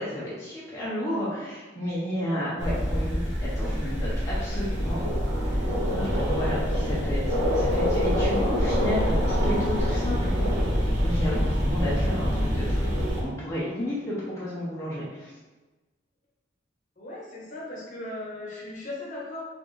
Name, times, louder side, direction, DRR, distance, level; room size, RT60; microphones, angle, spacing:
voice 1, 0.0-5.0 5.4-10.4 11.0-15.4, equal, 15° left, -9 dB, 0.7 m, -32 dB
sound 1, 2.6-13.2, equal, 65° right, 1.2 m, -25 dB
voice 2, 17.0-19.5, left 2 dB, 40° left, -4 dB, 1.0 m, -37 dB
4.2 x 2.5 x 3.2 m, 1.2 s
head